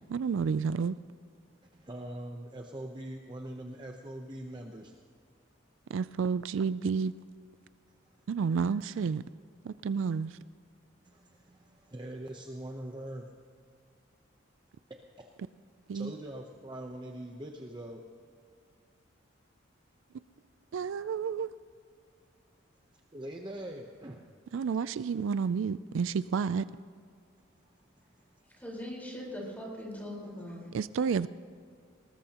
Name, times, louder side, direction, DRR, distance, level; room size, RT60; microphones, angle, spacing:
voice 1, 0.1-1.0 5.9-7.1 8.3-9.2 9.6-10.4 15.9-16.1 20.7-21.5 24.5-26.7 30.7-31.3, right 6 dB, 70° right, 16 dB, 0.3 m, -30 dB
voice 2, 1.6-4.9 7.9-8.2 9.9-10.2 11.0-13.2 15.2-15.3 15.9-18.0 22.7-24.2 27.4-28.5 30.2-30.3, right 1 dB, 20° right, 2 dB, 0.8 m, -43 dB
voice 3, 28.6-30.7, left 1 dB, 10° left, -3 dB, 4.4 m, -40 dB
19.5 x 19.0 x 2.9 m, 2.2 s
head